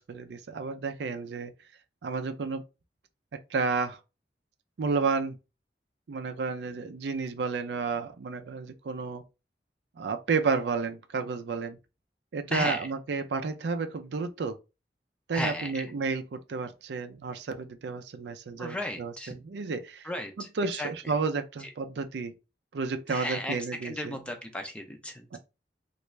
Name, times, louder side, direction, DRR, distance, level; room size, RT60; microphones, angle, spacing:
voice 1, 0.0-1.5 2.0-2.6 3.5-4.0 4.8-5.4 6.1-9.2 10.0-11.8 12.3-14.5 15.3-20.1 20.6-22.3 22.7-24.2 25.3-25.4, right 4 dB, 75° right, 0.4 m, -31 dB
voice 2, 12.5-12.9 15.3-15.9 18.6-19.3 20.0-20.5 20.8-21.2 21.6-21.7 23.1-23.6 23.8-25.4, left 1 dB, 5° left, 0.5 m, -35 dB
3.2 x 2.5 x 3.1 m
head